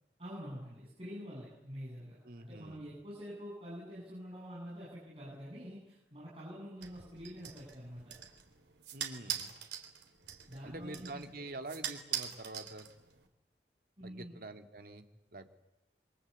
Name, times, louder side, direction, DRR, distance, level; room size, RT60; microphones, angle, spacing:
voice 1, 0.2-8.1 10.5-11.2 11.5-11.6 14.0-14.3, equal, 30° right, -6 dB, 8.0 m, -46 dB
voice 2, 2.2-2.8 8.9-9.5 10.6-12.9 14.0-15.0 15.3-15.5, right 2 dB, 55° right, 6 dB, 2.2 m, -46 dB
sound 1, 6.8-13.3, right 9 dB, 90° right, 3.5 m, -43 dB
27.0 x 24.5 x 8.3 m, 0.95 s
head